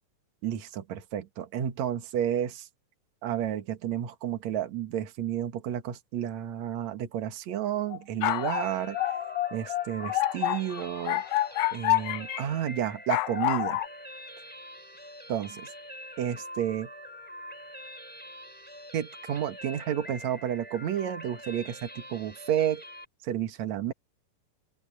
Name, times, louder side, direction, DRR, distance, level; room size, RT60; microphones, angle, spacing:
voice 1, 0.4-2.7 3.2-9.0 9.5-11.2 11.7-13.8 15.3-15.7 16.2-16.9 18.9-22.8 23.2-23.9, right 10 dB, 60° right, 1.8 m, -31 dB
sound 1, 7.9-12.4 13.1-13.9, left 16 dB, 75° left, 2.9 m, -28 dB
sound 2, 8.3-23.1, equal, ahead, 3.0 m, -45 dB
open air
omnidirectional pair, 5.6 m